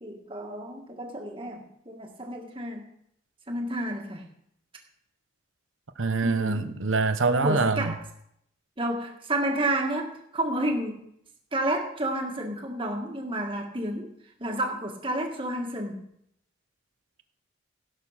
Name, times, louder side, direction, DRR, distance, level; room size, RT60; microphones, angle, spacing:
voice 1, 0.0-2.9 3.5-4.3 6.2-6.8 7.4-8.0 8.8-11.1 11.5-14.1 14.4-16.0, right 1 dB, 25° right, 2 dB, 1.8 m, -30 dB
voice 2, 6.0-7.9, right 3 dB, 80° right, 10 dB, 0.9 m, -25 dB
16.5 x 6.7 x 5.8 m, 0.75 s
head